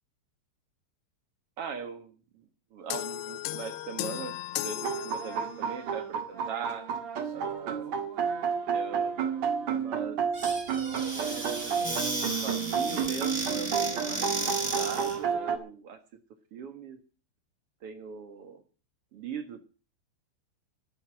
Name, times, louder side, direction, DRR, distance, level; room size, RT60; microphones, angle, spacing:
voice 1, 1.6-6.9 7.3-7.9 8.6-9.3 9.6-10.2 11.1-11.6 12.4-16.0 16.5-17.0 17.8-18.6 19.1-19.6, right 6 dB, 85° right, 7 dB, 1.2 m, -40 dB
sound 1, 2.9-5.8, left 16 dB, 75° left, 2.6 m, -36 dB
sound 2, 4.8-15.6, right 7 dB, 50° right, 2.3 m, -31 dB
Squeak / Cupboard open or close, 10.3-15.2, right 2 dB, 15° right, 3.3 m, -34 dB
13.0 x 12.5 x 6.2 m, 0.35 s
omnidirectional pair, 5.4 m